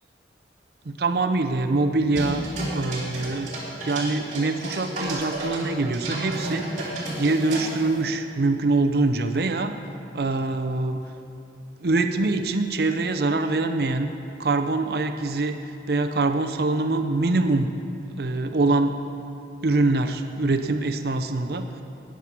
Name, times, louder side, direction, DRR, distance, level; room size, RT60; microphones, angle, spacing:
voice 1, 0.8-2.4 2.7-3.5 3.8-6.7 7.2-9.7 10.1-11.0 11.8-14.1 14.4-15.6 15.9-17.7 18.2-19.0 19.6-21.7, right 2 dB, 55° right, 7 dB, 0.6 m, -24 dB
sound 1, 2.1-5.7 5.9-8.0, right 1 dB, 40° right, 3.0 m, -31 dB
13.5 x 9.5 x 5.9 m, 2.9 s
head